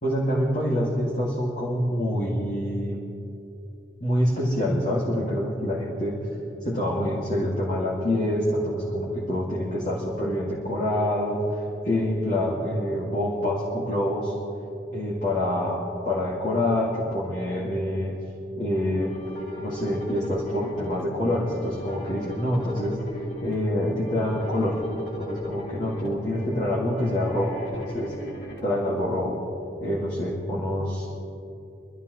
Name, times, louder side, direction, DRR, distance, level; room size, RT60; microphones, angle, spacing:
voice 1, 0.0-3.0 4.0-6.2 6.6-11.4 11.8-14.3 14.9-18.1 18.6-19.1 19.6-23.0 23.4-24.8 25.2-28.1 28.6-29.4 29.8-31.1, left 1 dB, 45° left, -5 dB, 2.3 m, -26 dB
sound 1, 18.7-28.6, left 1 dB, 70° left, 2.9 m, -39 dB
25.5 x 12.5 x 3.2 m, 2.8 s
head